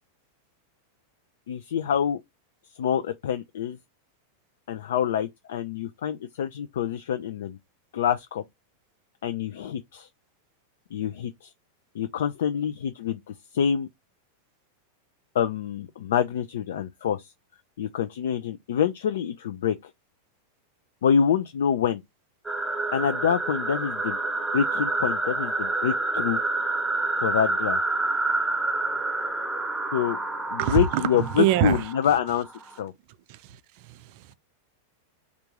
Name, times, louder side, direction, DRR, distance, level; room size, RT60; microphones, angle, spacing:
voice 1, 1.5-2.2 2.8-3.8 4.7-7.6 7.9-8.4 9.2-10.1 10.9-11.5 11.9-13.2 13.5-13.9 15.3-17.3 17.8-19.9 21.0-22.0 22.9-24.2 24.5-26.4 27.2-27.8 29.9-30.2 30.5-32.5 32.8-32.9, left 8 dB, 60° left, 0.3 m, -26 dB
sound 1, 22.5-32.8, right 2 dB, 5° right, 0.9 m, -28 dB
voice 2, 30.6-31.9 33.3-34.3, right 10 dB, 45° right, 0.4 m, -25 dB
3.4 x 2.4 x 2.9 m
figure-of-eight pair, 90°, 0 cm